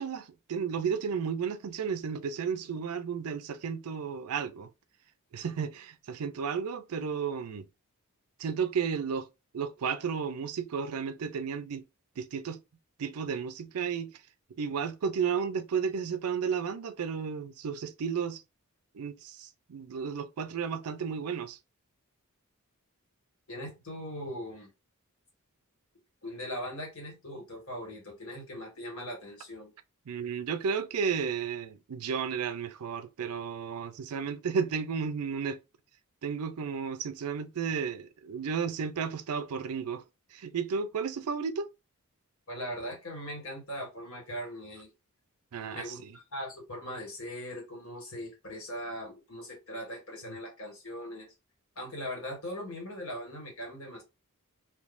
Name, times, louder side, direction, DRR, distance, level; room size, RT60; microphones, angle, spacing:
voice 1, 0.0-4.7 5.3-7.6 8.4-9.3 9.5-11.8 12.2-12.6 13.0-14.1 14.6-18.4 18.9-21.6 30.1-35.6 36.2-40.0 40.3-41.7 45.5-46.1, right 6 dB, 85° right, 0.4 m, -33 dB
voice 2, 23.5-24.7 26.2-29.7 42.5-44.9 45.7-51.3 51.8-54.0, equal, 70° left, 1.8 m, -40 dB
3.6 x 2.7 x 2.5 m
head